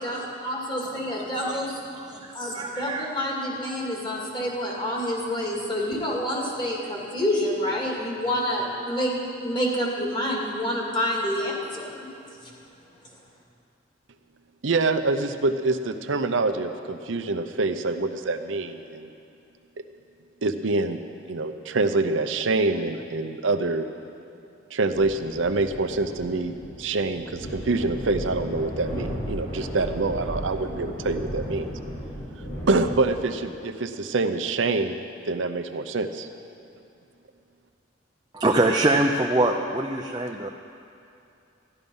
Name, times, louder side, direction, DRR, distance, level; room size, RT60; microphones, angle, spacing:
voice 1, 0.0-1.8 2.3-12.1, equal, 25° left, -3 dB, 2.3 m, -28 dB
voice 2, 1.9-3.1 38.3-40.5, right 2 dB, 20° right, 2 dB, 0.5 m, -24 dB
voice 3, 14.6-19.1 20.4-21.0 21.3-23.9 24.7-31.7 32.7-35.0 35.3-36.3, right 3 dB, 80° right, 8 dB, 0.7 m, -26 dB
sound 1, 24.9-33.3, equal, 55° left, 3.5 m, -35 dB
13.5 x 12.0 x 5.5 m, 2.6 s
head